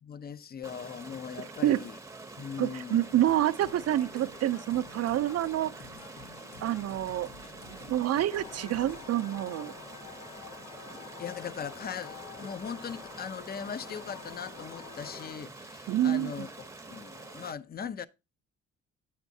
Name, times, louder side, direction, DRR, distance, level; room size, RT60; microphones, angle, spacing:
voice 1, 0.0-2.0 2.4-3.1 11.2-18.1, left 7 dB, 30° left, 0.5 m, -40 dB
Stream, 0.6-17.5, right 3 dB, 10° right, 0.7 m, -47 dB
voice 2, 2.6-5.7 6.6-7.3 7.7-9.7 15.9-16.5, right 12 dB, 55° right, 0.5 m, -27 dB
sound 1, 3.3-9.1, left 5 dB, 65° left, 1.2 m, -51 dB
sound 2, 8.3-15.4, left 10 dB, 80° left, 0.5 m, -48 dB
8.1 x 7.2 x 2.7 m
cardioid pair, 90°, 30 cm